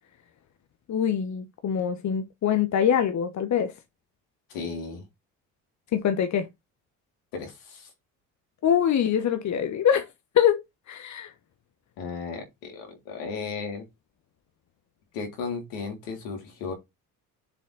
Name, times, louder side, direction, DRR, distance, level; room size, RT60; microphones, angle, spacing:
voice 1, 0.9-3.7 5.9-6.5 8.6-10.0 10.3-10.6 10.9-11.3, left 9 dB, 50° left, 1.3 m, -24 dB
voice 2, 4.5-5.0 7.3-7.9 12.0-13.8 15.1-16.7, left 5 dB, 85° left, 3.5 m, -35 dB
7.3 x 4.2 x 4.1 m
supercardioid pair, 70°, 36 cm